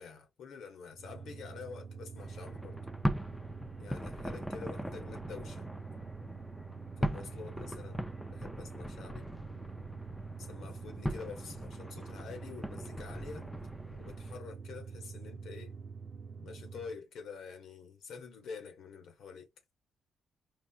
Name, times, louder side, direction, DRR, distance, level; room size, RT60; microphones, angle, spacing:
voice 1, 0.0-2.8 3.8-5.7 7.0-9.3 10.4-13.5 13.9-15.8 16.4-19.5, left 5 dB, 75° left, 1.2 m, -47 dB
sound 1, 0.9-17.0, right 5 dB, 55° right, 0.8 m, -46 dB
sound 2, 2.2-14.4, equal, 5° left, 0.5 m, -40 dB
4.3 x 2.3 x 2.4 m
cardioid pair, 90°, 0 cm